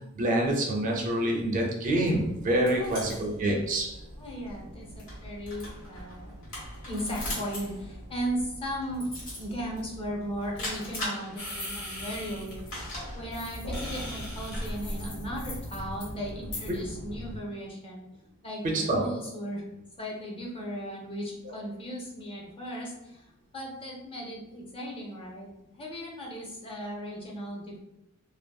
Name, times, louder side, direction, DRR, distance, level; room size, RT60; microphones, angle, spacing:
voice 1, 0.1-4.0 18.7-19.1 21.4-21.5, right 1 dB, 35° right, 0 dB, 0.4 m, -26 dB
sound 1, 2.0-17.4, equal, 65° left, 1.2 m, -40 dB
voice 2, 2.7-3.3 4.2-6.3 6.9-9.1 9.4-18.1 18.4-19.6 20.0-23.3 23.5-25.5 25.7-27.8, equal, 25° left, -2 dB, 0.5 m, -37 dB
sound 2, 11.4-12.7 13.3-16.8, left 2 dB, 90° left, 0.9 m, -44 dB
sound 3, 11.4-17.0, left 1 dB, 50° left, 0.9 m, -43 dB
2.6 x 2.5 x 2.2 m, 0.90 s
head